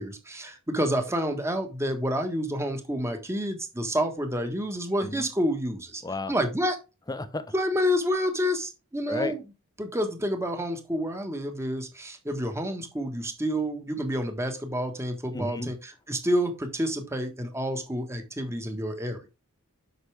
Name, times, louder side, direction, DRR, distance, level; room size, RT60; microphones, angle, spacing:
voice 1, 0.0-6.0 6.3-6.8 7.5-9.4 9.8-15.8 16.1-19.3, equal, 15° right, 1.4 m, -29 dB
voice 2, 6.0-6.3 7.1-7.5 9.1-9.3 15.3-15.7, left 2 dB, 20° left, 0.7 m, -32 dB
8.1 x 6.0 x 3.4 m
head